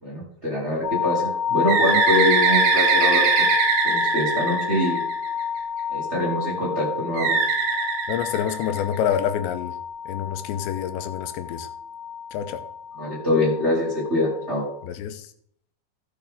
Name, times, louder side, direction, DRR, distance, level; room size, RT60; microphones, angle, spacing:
voice 1, 0.0-3.5 3.8-5.0 5.9-7.4 13.0-14.6, left 1 dB, 20° right, -5 dB, 2.4 m, -24 dB
sound 1, 0.8-14.9, left 7 dB, 55° left, 1.9 m, -29 dB
Bird, 1.7-5.4 7.2-9.0, right 5 dB, 80° right, 3.5 m, -22 dB
voice 2, 8.1-9.8 10.1-11.7 12.3-12.6 14.9-15.3, left 9 dB, 85° left, 9 dB, 3.0 m, -27 dB
15.5 x 7.1 x 3.7 m, 0.66 s
omnidirectional pair, 5.1 m